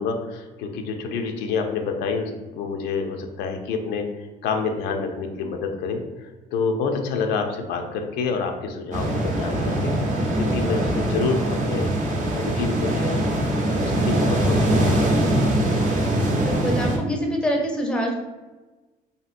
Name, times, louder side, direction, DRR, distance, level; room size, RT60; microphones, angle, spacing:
voice 1, 0.0-4.0 4.4-11.9 12.3-13.4 13.8-15.1, left 5 dB, 85° left, 4 dB, 0.5 m, -28 dB
sound 1, 8.9-17.0, right 1 dB, 50° right, 0.6 m, -22 dB
voice 2, 16.4-18.1, equal, 5° left, 0 dB, 0.5 m, -25 dB
2.8 x 2.7 x 2.5 m, 1.2 s
cardioid pair, 110°, 17 cm